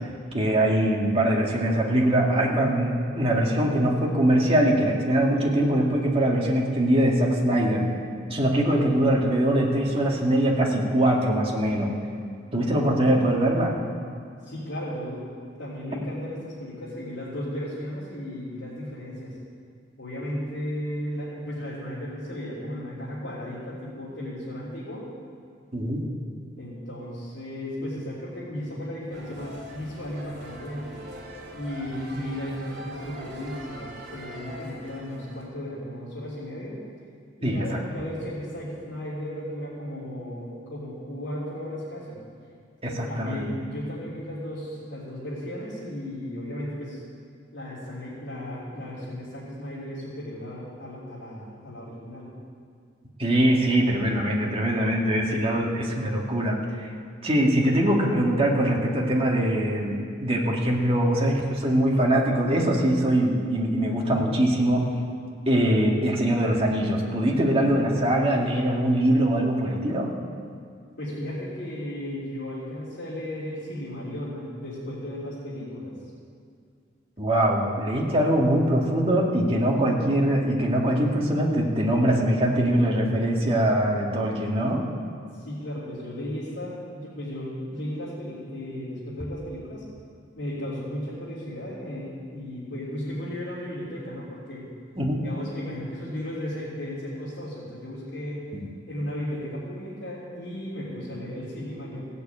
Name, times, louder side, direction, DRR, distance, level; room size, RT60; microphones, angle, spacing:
voice 1, 0.3-7.9 8.3-12.0 12.5-13.7 25.7-26.0 37.4-37.8 42.8-43.5 53.2-56.9 57.2-64.9 65.5-70.1 77.2-84.9 95.0-95.2 98.5-98.7, right 1 dB, 30° right, -2 dB, 2.0 m, -22 dB
voice 2, 14.4-15.3 15.6-19.3 20.0-25.0 26.6-31.0 31.5-36.8 37.4-42.2 42.9-47.0 47.5-52.3 71.0-75.9 85.3-89.8 90.4-94.7 95.2-98.5 98.9-102.1, left 1 dB, 75° left, -11 dB, 3.5 m, -35 dB
sound 1, 29.1-35.5, equal, 60° right, 2.9 m, -42 dB
16.5 x 7.0 x 8.7 m, 2.3 s
head